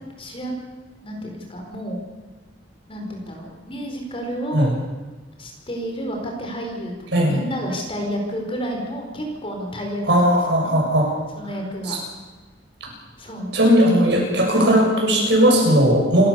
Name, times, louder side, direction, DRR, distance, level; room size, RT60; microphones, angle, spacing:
voice 1, 0.2-0.5 1.0-2.0 2.9-4.8 5.4-10.3 10.6-10.7 11.4-12.0 13.2-14.9 16.0-16.3, equal, 30° left, 2 dB, 4.7 m, -31 dB
voice 2, 10.1-11.1 11.9-12.0 12.8-12.9 13.5-16.3, equal, 65° right, -1 dB, 7.5 m, -17 dB
28.0 x 14.5 x 7.2 m, 1.2 s
head